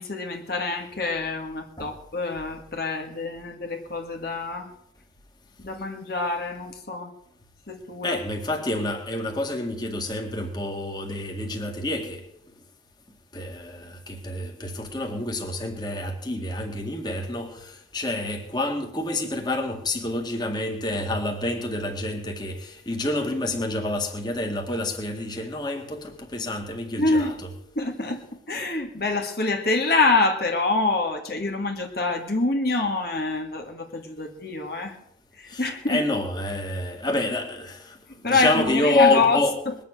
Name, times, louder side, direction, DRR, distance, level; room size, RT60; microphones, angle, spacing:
voice 1, 0.0-4.7 5.6-7.1 7.7-8.2 27.0-27.3 27.8-28.2 28.5-35.0 35.4-36.0 38.2-39.4 39.7-39.8, left 3 dB, 55° left, 1.8 m, -26 dB
voice 2, 8.0-12.2 13.3-27.3 35.5-38.0 38.2-39.5, left 2 dB, 25° left, 2.1 m, -28 dB
21.0 x 7.5 x 9.0 m
head